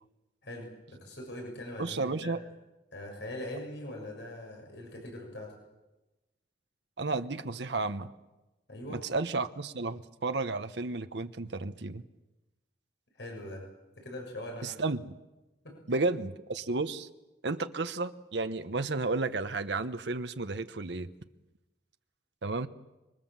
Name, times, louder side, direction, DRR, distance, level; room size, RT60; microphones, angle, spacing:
voice 1, 0.4-2.4 2.9-5.5 8.7-9.1 13.2-13.6 14.0-14.7 15.6-15.8, left 1 dB, 80° left, 1 dB, 6.7 m, -42 dB
voice 2, 1.8-2.4 7.0-8.1 8.9-12.0 14.6-15.1 15.9-17.1 17.4-21.1 22.4-22.7, right 3 dB, 75° right, 9 dB, 1.0 m, -32 dB
26.0 x 23.0 x 7.5 m, 1.0 s
head